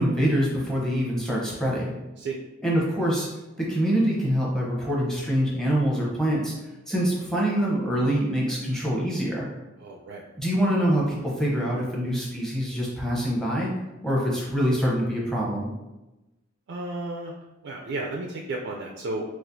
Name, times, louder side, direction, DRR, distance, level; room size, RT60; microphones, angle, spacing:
voice 1, 0.0-1.9 2.6-3.3 3.6-6.5 6.9-9.4 10.4-13.7 14.0-15.7, equal, 5° left, -5 dB, 0.8 m, -25 dB
voice 2, 9.8-10.2 16.7-17.3 17.6-19.2, right 2 dB, 55° right, 0 dB, 0.3 m, -33 dB
4.1 x 2.4 x 2.6 m, 1.0 s
head